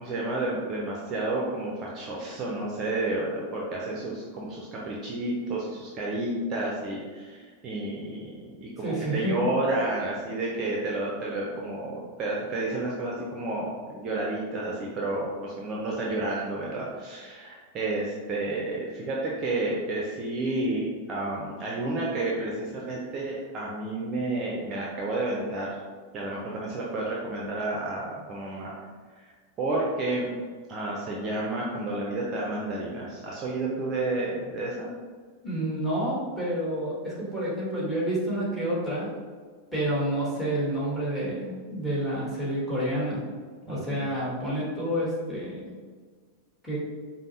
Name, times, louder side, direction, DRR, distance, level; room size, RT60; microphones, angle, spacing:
voice 1, 0.0-25.8 26.1-28.7 29.2-30.3 30.7-34.9 43.7-44.0, right 2 dB, 30° right, -3 dB, 0.6 m, -31 dB
voice 2, 8.8-9.3 35.4-39.1 39.7-43.2 43.7-45.7 46.6-46.8, right 1 dB, 5° left, -7 dB, 1.4 m, -29 dB
5.2 x 2.0 x 2.8 m, 1.5 s
figure-of-eight pair, 90°, 0 cm